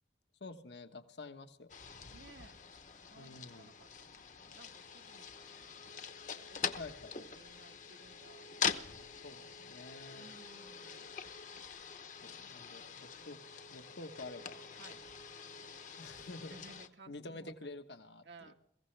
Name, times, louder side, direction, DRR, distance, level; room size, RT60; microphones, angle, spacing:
voice 1, 0.4-1.7 3.2-3.7 6.8-7.1 9.2-10.2 12.2-13.4 13.7-14.6 16.0-16.5 17.1-18.5, left 2 dB, 80° left, 8 dB, 1.3 m, -49 dB
sound 1, 1.7-16.9, left 6 dB, 45° left, 0.9 m, -44 dB
voice 2, 2.1-2.6 3.0-6.2 6.5-6.8 7.1-9.2 10.1-11.1 13.2-13.4 14.7-15.0 16.5-17.5 18.2-18.5, right 3 dB, 80° right, 4 dB, 1.5 m, -59 dB
22.5 x 15.5 x 3.3 m, 0.72 s
head